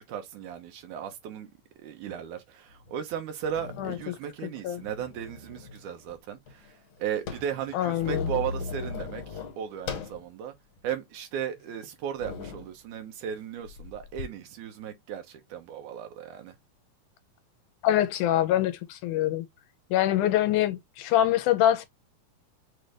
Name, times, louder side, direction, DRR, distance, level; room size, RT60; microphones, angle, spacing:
voice 1, 0.0-1.5 1.8-10.5 10.8-16.6, right 9 dB, 80° right, 2.4 m, -36 dB
sound 1, 2.9-3.0 3.5-4.1 4.8-5.8 6.1-6.2 6.5-10.2 10.8-10.9 11.6-11.7 12.2-12.7 13.7-14.3, left 4 dB, 60° left, 2.2 m, -37 dB
voice 2, 3.8-4.1 4.6-4.8 7.7-8.3 17.8-19.5 19.9-21.9, left 12 dB, 80° left, 2.1 m, -24 dB
6.2 x 2.5 x 3.3 m
omnidirectional pair, 3.6 m